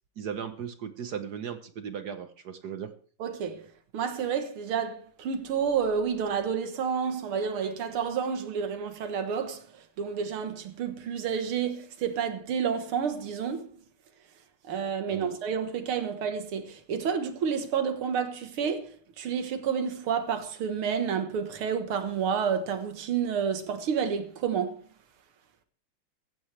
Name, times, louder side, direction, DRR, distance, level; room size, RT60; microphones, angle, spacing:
voice 1, 0.2-2.9 15.1-15.3, right 8 dB, 55° right, 1.4 m, -37 dB
voice 2, 3.2-3.7 3.9-13.7 14.7-18.9 19.2-24.8, right 7 dB, 80° right, 2.2 m, -30 dB
15.5 x 15.0 x 3.3 m
omnidirectional pair, 2.3 m